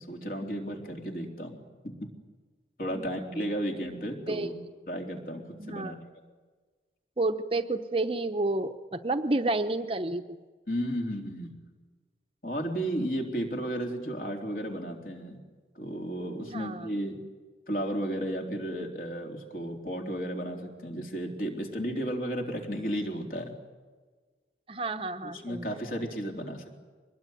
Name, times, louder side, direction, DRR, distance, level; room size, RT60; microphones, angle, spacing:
voice 1, 0.0-1.6 1.8-1.9 2.8-4.5 4.9-5.9 10.7-11.5 12.4-15.4 15.8-17.2 17.7-23.6 25.2-26.7, equal, 50° left, 1 dB, 3.8 m, -33 dB
voice 2, 5.6-6.0 7.2-10.4 16.4-16.9 24.7-25.8, right 2 dB, 30° right, 8 dB, 0.8 m, -30 dB
24.0 x 20.5 x 9.4 m, 1.4 s
head